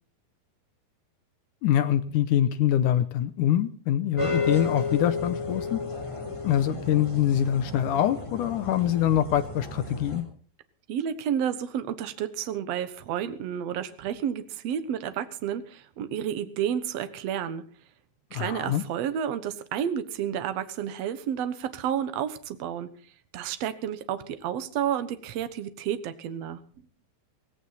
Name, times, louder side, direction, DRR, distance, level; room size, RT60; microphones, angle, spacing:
voice 1, 1.6-5.8 6.4-10.3 18.3-18.8, left 11 dB, 75° left, 11 dB, 1.9 m, -24 dB
sound 1, 4.2-10.2, left 3 dB, 10° left, 2.9 m, -33 dB
voice 2, 10.9-17.6 18.3-22.9 23.3-26.6, right 9 dB, 65° right, 11 dB, 1.7 m, -31 dB
17.5 x 16.5 x 4.1 m, 0.43 s
omnidirectional pair, 4.5 m